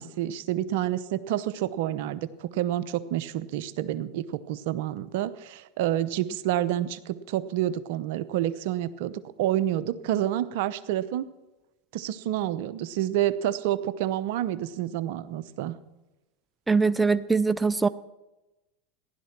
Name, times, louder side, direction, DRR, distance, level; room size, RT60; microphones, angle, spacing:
voice 1, 0.0-11.3 11.9-15.8, right 12 dB, 65° right, 15 dB, 0.8 m, -28 dB
voice 2, 16.7-17.9, right 4 dB, 10° right, 14 dB, 0.4 m, -22 dB
15.0 x 11.5 x 6.0 m, 1.0 s
hypercardioid pair, 100°, 0 cm